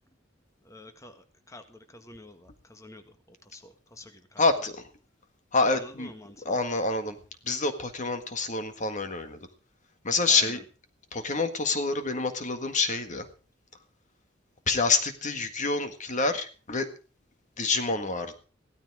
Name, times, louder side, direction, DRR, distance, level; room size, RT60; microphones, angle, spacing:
voice 1, 0.6-3.0 3.5-4.4 5.8-6.4 10.3-10.5, left 2 dB, 15° left, 7 dB, 1.6 m, -48 dB
voice 2, 4.4-4.9 5.5-6.1 6.4-7.2 7.4-9.4 10.0-10.6 11.1-13.3 14.7-16.9 17.6-18.4, left 3 dB, 40° left, 8 dB, 1.8 m, -27 dB
16.0 x 13.5 x 4.9 m, 0.37 s
head